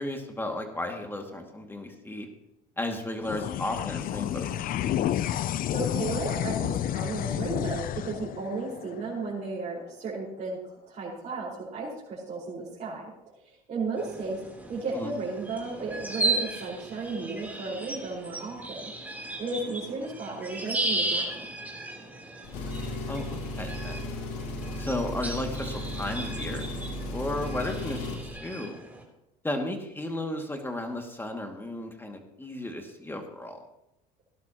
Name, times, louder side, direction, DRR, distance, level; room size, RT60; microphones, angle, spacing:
voice 1, 0.0-2.3 2.8-4.7 14.9-15.1 23.1-24.2 24.8-26.6 27.1-28.7 29.4-33.6, left 1 dB, 10° left, 3 dB, 2.3 m, -34 dB
sound 1, 3.2-9.9, left 11 dB, 50° left, 0.6 m, -31 dB
voice 2, 5.6-10.6 10.9-14.4 14.7-18.8 19.4-21.3, right 3 dB, 35° right, -7 dB, 5.0 m, -34 dB
sound 2, 14.0-29.0, right 2 dB, 10° right, 3.6 m, -35 dB
Engine, 22.4-28.3, left 1 dB, 75° left, 2.3 m, -35 dB
17.5 x 11.5 x 3.0 m, 0.87 s
supercardioid pair, 90°, 20 cm